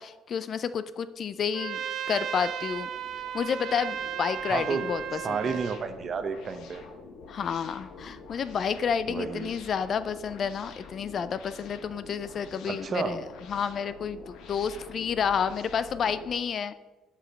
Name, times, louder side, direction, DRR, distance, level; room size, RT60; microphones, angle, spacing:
voice 1, 0.0-2.9 3.3-5.5 7.3-16.7, left 7 dB, 45° left, 14 dB, 0.4 m, -30 dB
sound 1, 1.2-16.3, left 5 dB, 75° left, 1.0 m, -47 dB
Trumpet, 1.5-5.8, right 9 dB, 60° right, 0.4 m, -35 dB
voice 2, 4.5-4.9 5.1-6.8 9.1-9.5 12.6-13.2, right 5 dB, 40° right, 8 dB, 0.8 m, -31 dB
8.1 x 5.0 x 5.8 m, 1.1 s
cardioid pair, 135°, 0 cm